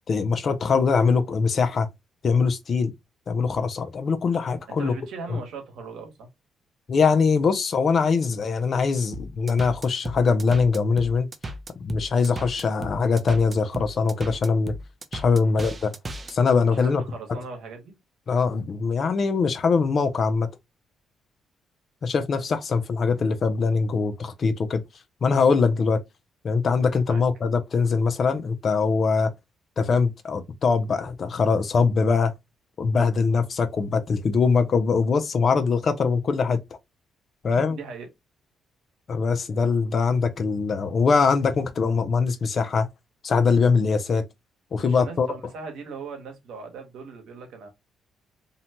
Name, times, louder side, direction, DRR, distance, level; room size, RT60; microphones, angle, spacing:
voice 1, 0.1-1.9 2.2-2.9 3.3-4.9 5.3-5.4 6.9-11.3 11.8-14.7 15.1-15.9 16.3-17.0 18.3-20.5 22.0-24.8 25.2-26.0 26.4-29.3 29.8-32.3 32.8-36.6 37.4-37.8 39.1-42.9 43.2-44.2 44.7-45.3, left 5 dB, 50° left, 0.4 m, -22 dB
voice 2, 4.8-6.3 15.4-15.5 16.7-18.0 27.1-27.2 37.5-38.1 44.8-47.7, right 4 dB, 80° right, 1.0 m, -39 dB
sound 1, 9.1-16.3, right 1 dB, 30° right, 0.4 m, -35 dB
2.7 x 2.1 x 2.8 m
cardioid pair, 90°, 0 cm